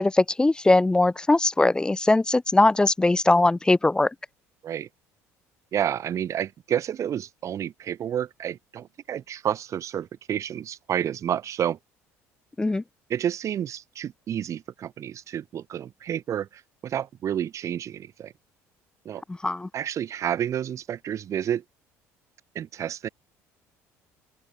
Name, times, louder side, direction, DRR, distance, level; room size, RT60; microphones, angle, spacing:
voice 1, 0.0-4.1 12.6-12.8 19.4-19.7, left 2 dB, 10° left, 0.5 m, -20 dB
voice 2, 5.7-11.8 13.1-18.3 19.1-19.2 19.7-21.6 22.6-23.1, right 10 dB, 50° right, 1.9 m, -30 dB
open air
supercardioid pair, 80°, 7 cm